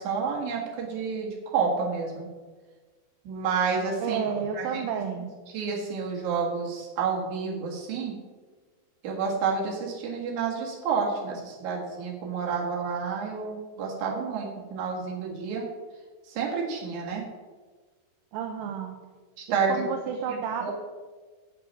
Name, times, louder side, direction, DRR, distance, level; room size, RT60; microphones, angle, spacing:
voice 1, 0.0-2.3 3.2-4.2 4.5-4.8 5.5-8.1 9.0-15.6 16.3-17.2 19.4-19.9 20.3-20.7, right 5 dB, 60° right, -2 dB, 2.8 m, -29 dB
voice 2, 4.0-5.3 18.3-19.0 19.5-20.7, right 7 dB, 80° right, 4 dB, 2.3 m, -31 dB
9.5 x 6.0 x 5.4 m, 1.4 s
omnidirectional pair, 4.2 m